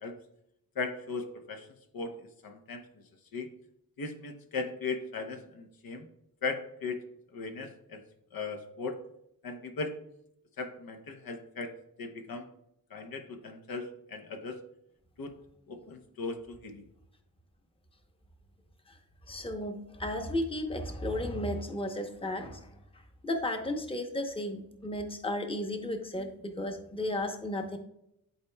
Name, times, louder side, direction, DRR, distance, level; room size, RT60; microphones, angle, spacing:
voice 1, 0.8-1.7 1.9-2.8 3.3-3.5 4.0-6.1 6.4-7.0 7.3-8.0 8.3-9.0 9.4-10.0 10.6-11.7 12.0-12.5 12.9-14.6 15.2-15.3 15.7-16.9, left 4 dB, 75° left, 5 dB, 0.9 m, -37 dB
voice 2, 19.3-22.7 23.2-27.8, left 1 dB, 15° left, 5 dB, 0.8 m, -34 dB
11.5 x 4.2 x 2.2 m, 0.79 s
cardioid pair, 85°, 36 cm